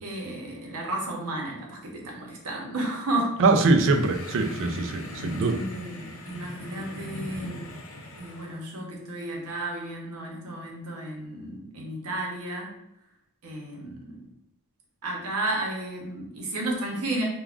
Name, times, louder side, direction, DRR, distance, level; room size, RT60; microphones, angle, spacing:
voice 1, 0.0-3.4 5.5-7.6 8.2-12.7 13.4-14.3 15.0-17.2, right 1 dB, 85° right, -1 dB, 0.8 m, -33 dB
voice 2, 3.4-5.6, right 3 dB, 60° right, 6 dB, 0.3 m, -22 dB
sound 1, 3.6-8.6, left 1 dB, 60° left, 0.5 m, -40 dB
2.4 x 2.3 x 3.3 m, 0.84 s
head